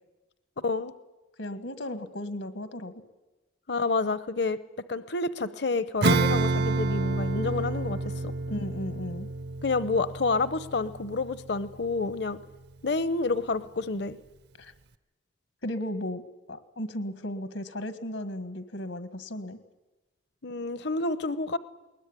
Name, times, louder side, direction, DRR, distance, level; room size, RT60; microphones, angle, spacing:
voice 1, 1.4-3.0 8.5-9.3 14.6-14.7 15.6-16.2 16.5-19.6, left 1 dB, 85° left, 10 dB, 1.7 m, -35 dB
voice 2, 3.7-4.6 4.9-8.3 9.6-12.4 12.8-14.2 20.4-21.6, left 3 dB, 55° left, 14 dB, 0.8 m, -29 dB
Acoustic guitar / Strum, 6.0-12.0, right 2 dB, 55° right, 0.8 m, -29 dB
21.0 x 20.5 x 9.9 m, 1.1 s
head